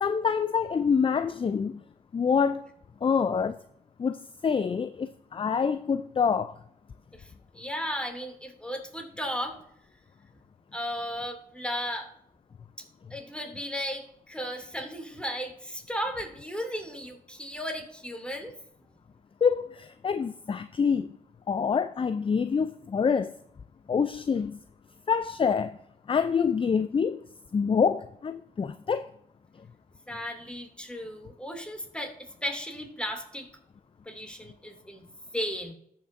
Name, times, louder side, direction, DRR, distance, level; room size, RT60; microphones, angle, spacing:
voice 1, 0.0-1.8 2.1-2.6 3.0-3.6 4.0-6.5 19.4-21.1 21.5-23.3 23.9-24.6 25.1-25.8 26.1-27.2 27.5-29.1, left 6 dB, 35° left, 0.4 m, -26 dB
voice 2, 7.1-9.6 10.7-12.1 12.8-12.9 13.1-18.6 30.1-33.5 34.1-35.0 35.3-35.7, equal, 5° left, 2.6 m, -35 dB
14.5 x 5.8 x 2.6 m
cardioid pair, 50°, 16 cm